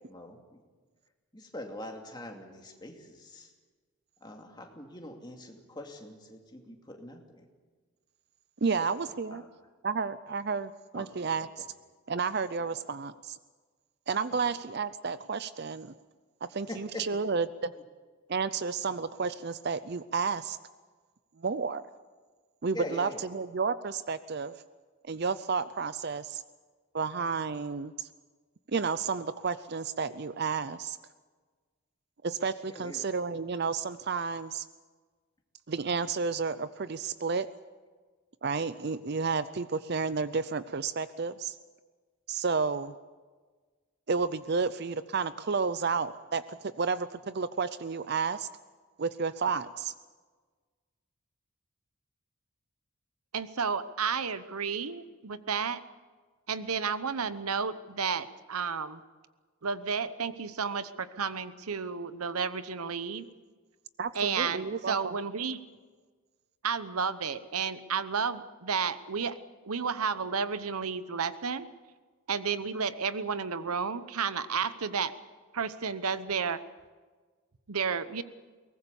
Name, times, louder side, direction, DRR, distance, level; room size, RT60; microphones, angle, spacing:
voice 1, 0.1-0.6 1.3-3.5 4.2-7.4 8.8-9.0 9.3-9.5 10.9-11.1 11.4-11.5 12.6-12.8 14.3-14.4 16.7-17.0 22.7-23.3 32.7-33.1, left 1 dB, 20° left, 2 dB, 2.5 m, -43 dB
voice 2, 8.6-9.4 9.8-11.6 12.1-13.4 14.1-15.9 16.4-17.7 18.3-20.6 21.4-21.8 22.6-24.5 25.0-26.4 26.9-28.1 28.7-31.0 32.2-34.7 35.7-37.5 38.4-41.6 42.3-43.0 44.1-48.5 49.0-49.9 64.0-65.1, right 5 dB, 50° right, 14 dB, 0.5 m, -31 dB
voice 3, 53.3-55.8 56.5-59.0 59.6-63.3 64.1-65.6 66.6-69.4 69.7-71.6 72.3-75.1 75.5-76.6 77.7-78.2, right 6 dB, 90° right, 14 dB, 1.0 m, -32 dB
22.5 x 19.0 x 7.1 m, 1.4 s
head